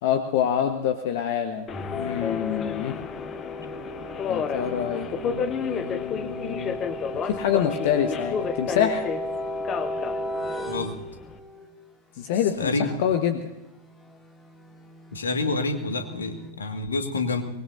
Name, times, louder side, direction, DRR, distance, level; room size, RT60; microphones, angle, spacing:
voice 1, 0.0-1.7 1.9-3.0 4.3-6.8 7.3-9.1 12.2-13.4, left 9 dB, 50° left, 7 dB, 1.2 m, -26 dB
Subway metro underground, 1.7-11.4, left 7 dB, 30° left, 1.0 m, -32 dB
sound 1, 1.7-11.7 13.8-16.5, equal, 10° left, 2.6 m, -35 dB
voice 2, 12.6-12.9 15.1-17.4, left 3 dB, 70° left, 6 dB, 1.9 m, -27 dB
23.5 x 20.5 x 2.7 m, 0.96 s
figure-of-eight pair, 90°, 0 cm